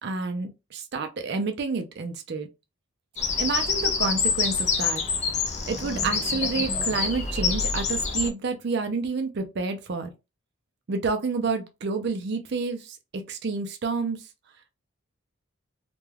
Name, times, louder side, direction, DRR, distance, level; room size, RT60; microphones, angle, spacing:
voice 1, 0.0-2.5 3.4-5.0 5.7-10.1 10.9-14.3, right 4 dB, 50° right, 0.4 m, -29 dB
Bird vocalization bird call bird song, 3.2-8.3, left 5 dB, 30° left, 0.4 m, -26 dB
2.3 x 2.2 x 3.1 m
head